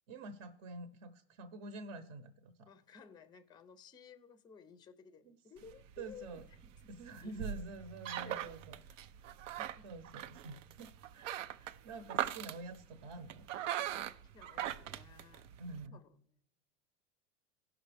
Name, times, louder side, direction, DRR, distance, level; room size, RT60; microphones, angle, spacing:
voice 1, 0.1-2.7 6.0-6.4 6.9-8.8 9.2-9.4 9.8-13.4 15.6-16.0, right 2 dB, 55° right, 0.9 m, -48 dB
voice 2, 2.7-7.4 8.2-8.6 9.4-9.9 14.3-16.4, left 6 dB, 10° left, 0.5 m, -57 dB
sound 1, 5.6-15.9, right 11 dB, 85° right, 0.7 m, -42 dB
17.5 x 6.1 x 3.4 m
supercardioid pair, 130°, 37 cm